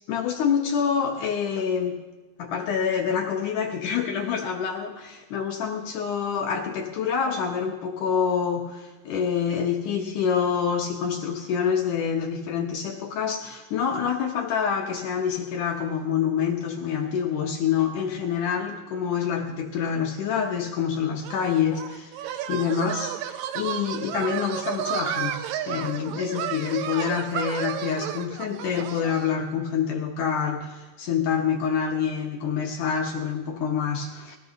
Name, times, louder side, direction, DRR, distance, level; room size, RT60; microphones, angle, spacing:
voice 1, 0.1-2.0 2.4-34.4, left 7 dB, 80° left, 2 dB, 1.8 m, -27 dB
sound 1, 21.2-29.4, right 10 dB, 80° right, 2.0 m, -32 dB
20.0 x 14.0 x 3.9 m, 1.2 s
omnidirectional pair, 4.7 m